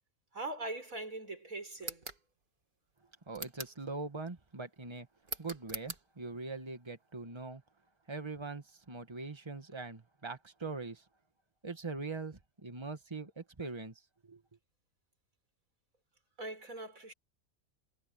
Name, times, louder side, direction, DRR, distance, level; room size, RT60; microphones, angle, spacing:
voice 1, 0.3-2.1 16.4-17.1, right 2 dB, 70° right, 6.4 m, -41 dB
sound 1, 1.8-2.2 3.3-3.8 5.2-6.0, right 3 dB, 35° right, 2.1 m, -42 dB
voice 2, 3.3-5.1 5.4-7.6 8.1-11.0 11.6-14.4, right 3 dB, 20° right, 1.7 m, -42 dB
omnidirectional pair, 1.5 m